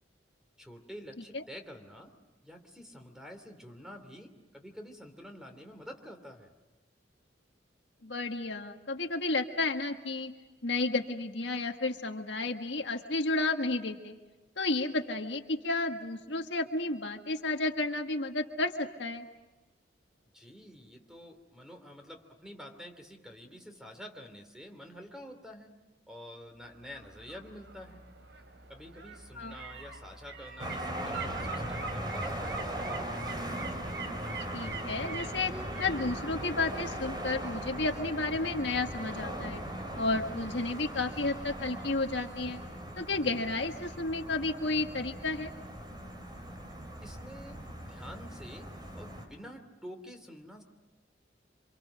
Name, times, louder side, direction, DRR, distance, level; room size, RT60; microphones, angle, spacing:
voice 1, 0.6-2.1 2.4-6.5 20.3-25.8 26.1-28.1 28.7-32.8 47.0-50.6, equal, 5° right, 5 dB, 3.0 m, -48 dB
voice 2, 8.0-10.3 10.6-14.1 14.6-19.3 29.3-29.5 34.5-35.5 35.8-39.6 39.9-42.6 43.0-45.5, left 3 dB, 75° left, 4 dB, 1.7 m, -32 dB
sound 1, 26.6-39.5 39.8-39.9, right 5 dB, 75° right, 3.4 m, -45 dB
sound 2, 30.6-49.3, right 1 dB, 25° right, 3.6 m, -39 dB
27.5 x 26.5 x 6.5 m, 1.2 s
head